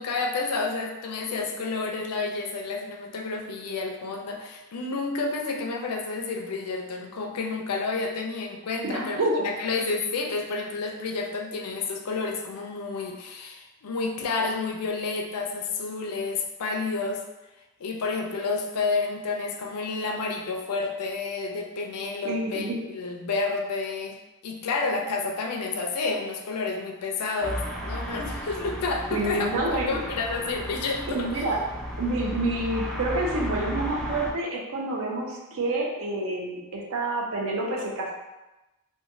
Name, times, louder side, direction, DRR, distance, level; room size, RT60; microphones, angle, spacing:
voice 1, 0.0-17.2 17.8-24.2 24.4-31.5, left 3 dB, 85° left, 3 dB, 0.4 m, -30 dB
voice 2, 8.8-9.5 22.2-22.8 29.1-30.0 31.1-31.6 32.0-38.1, right 2 dB, 65° right, -1 dB, 0.5 m, -28 dB
sound 1, 27.4-34.3, equal, ahead, 0.3 m, -34 dB
3.0 x 2.2 x 2.6 m, 1.0 s
head